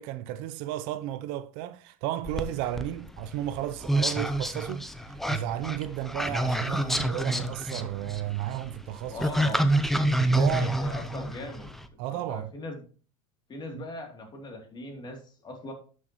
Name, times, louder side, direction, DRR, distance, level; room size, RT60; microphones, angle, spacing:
voice 1, 0.0-9.5 10.2-10.7 12.0-12.5 13.7-13.9, right 13 dB, 60° right, 0.6 m, -33 dB
sound 1, 2.2-11.9, right 1 dB, ahead, 0.7 m, -28 dB
voice 2, 9.1-9.6 10.6-11.7 12.1-12.8 13.5-15.7, left 2 dB, 25° left, 2.8 m, -40 dB
11.5 x 6.4 x 3.0 m
supercardioid pair, 120°, 17 cm